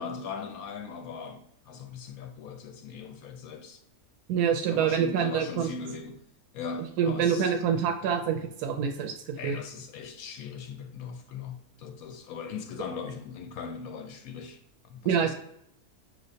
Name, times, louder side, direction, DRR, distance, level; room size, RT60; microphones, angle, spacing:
voice 1, 0.0-3.8 4.7-6.2 6.5-7.5 9.4-14.6 14.9-15.3, left 5 dB, 75° left, 1.0 m, -39 dB
voice 2, 4.3-5.7 7.0-9.6 15.0-15.3, right 7 dB, 90° right, 1.1 m, -26 dB
5.8 x 3.1 x 2.7 m
omnidirectional pair, 1.6 m